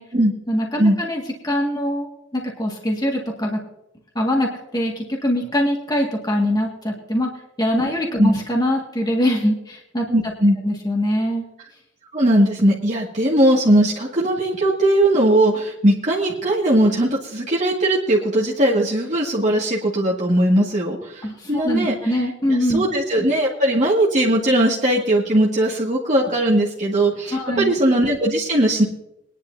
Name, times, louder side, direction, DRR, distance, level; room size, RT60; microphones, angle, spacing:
voice 1, 0.5-2.1 2.3-3.6 4.2-7.3 7.6-10.1 10.6-11.4 21.2-22.8 27.3-27.7, equal, 20° left, -1 dB, 1.9 m, -23 dB
voice 2, 10.1-10.6 12.1-21.9 22.5-28.8, right 1 dB, 40° right, -4 dB, 2.0 m, -19 dB
22.0 x 11.0 x 2.7 m, 0.83 s
head